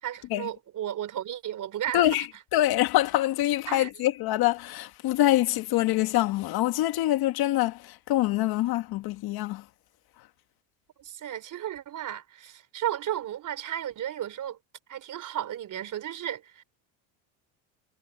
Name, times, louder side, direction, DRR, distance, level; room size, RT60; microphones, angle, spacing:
voice 1, 0.0-2.3 3.7-3.9 11.0-14.6 14.9-16.6, right 11 dB, 45° right, 3.7 m, -34 dB
voice 2, 1.9-9.7, left 15 dB, 55° left, 1.7 m, -25 dB
supercardioid pair, 115°, 44 cm